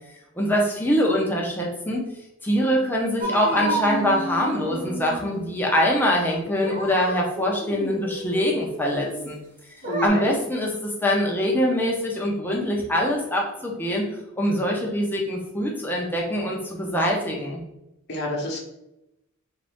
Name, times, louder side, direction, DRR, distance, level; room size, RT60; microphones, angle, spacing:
voice 1, 0.4-2.0 2.4-9.4 10.0-14.0 14.4-17.6, equal, 10° left, -2 dB, 0.7 m, -24 dB
sound 1, 3.2-5.7 6.4-9.3 9.8-10.1, right 1 dB, 40° right, 0.6 m, -31 dB
voice 2, 9.8-10.3 18.1-18.6, left 1 dB, 50° left, -1 dB, 0.9 m, -28 dB
3.6 x 2.6 x 3.5 m, 0.87 s
head